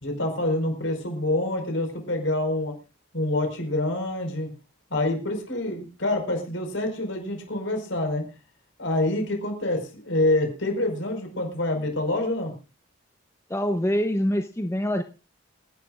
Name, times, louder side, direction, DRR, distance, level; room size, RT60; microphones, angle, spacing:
voice 1, 0.0-2.7 3.1-4.5 4.9-8.3 8.8-12.5, left 1 dB, 70° left, 4 dB, 4.8 m, -26 dB
voice 2, 13.5-15.0, equal, 15° left, 7 dB, 0.7 m, -25 dB
28.0 x 10.5 x 2.5 m, 0.29 s
head